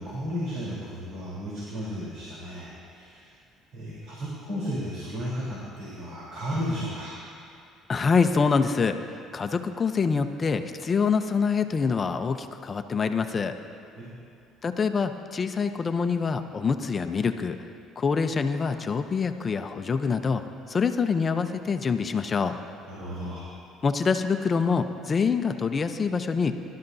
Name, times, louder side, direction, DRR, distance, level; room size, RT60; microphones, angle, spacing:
voice 1, 0.0-3.2 3.7-7.2 13.9-14.1 22.9-23.5, equal, 65° right, -7 dB, 3.6 m, -34 dB
voice 2, 7.9-9.0 9.3-13.5 14.6-17.6 18.0-20.4 20.7-22.6 23.8-26.5, left 5 dB, 30° left, 7 dB, 0.6 m, -25 dB
24.0 x 12.5 x 2.7 m, 2.4 s
cardioid pair, 120°, 0 cm